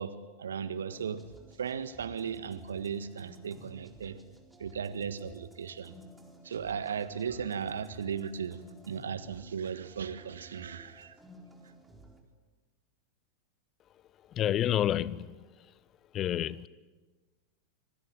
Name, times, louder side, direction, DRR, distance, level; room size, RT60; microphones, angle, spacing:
voice 1, 0.0-1.3 1.6-4.2 4.6-5.9 6.4-11.2, right 7 dB, 65° right, 1.6 m, -36 dB
sound 1, 0.9-12.2, right 1 dB, 5° right, 4.2 m, -54 dB
voice 2, 14.2-15.8 16.1-16.7, left 11 dB, 30° left, 0.9 m, -30 dB
25.5 x 23.5 x 8.9 m
figure-of-eight pair, 90°, 0 cm